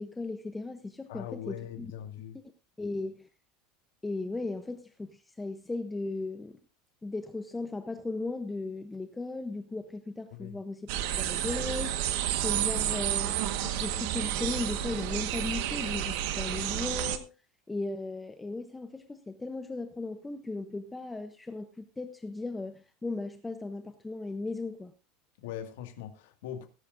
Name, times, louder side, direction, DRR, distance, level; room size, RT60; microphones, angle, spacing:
voice 1, 0.0-1.9 2.8-3.3 4.0-6.6 7.0-10.9 11.2-17.3 17.7-24.9, left 3 dB, 5° left, 0.7 m, -37 dB
voice 2, 1.1-2.4 10.3-10.6 25.4-26.7, left 10 dB, 80° left, 1.9 m, -41 dB
sound 1, 10.9-17.2, right 11 dB, 60° right, 1.4 m, -31 dB
18.0 x 11.0 x 2.6 m
supercardioid pair, 170°, 0 cm